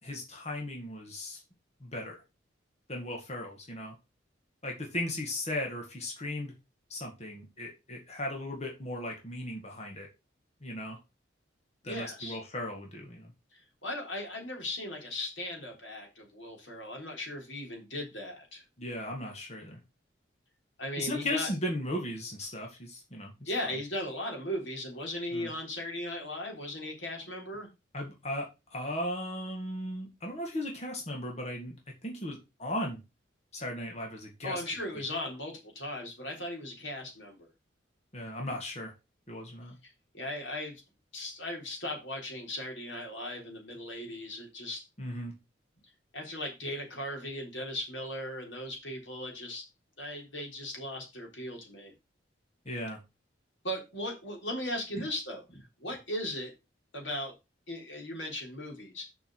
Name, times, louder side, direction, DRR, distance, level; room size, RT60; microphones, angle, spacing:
voice 1, 0.0-1.4 1.8-2.2 2.9-4.0 4.6-6.5 6.9-10.1 10.6-11.0 11.8-13.3 18.8-19.8 21.0-23.5 25.3-25.5 27.9-31.8 32.0-33.0 33.5-34.6 38.1-38.9 39.3-39.8 45.0-45.3 52.7-53.0 54.9-55.0, left 1 dB, 35° left, 1 dB, 2.0 m, -36 dB
voice 2, 11.8-12.4 13.5-18.6 20.8-21.5 23.5-27.7 34.4-37.5 39.8-40.8 41.1-44.8 46.1-49.6 50.0-51.9 53.6-56.5 56.9-57.3 57.7-59.1, left 1 dB, 80° left, 1 dB, 3.6 m, -38 dB
6.8 x 5.4 x 6.4 m, 0.26 s
head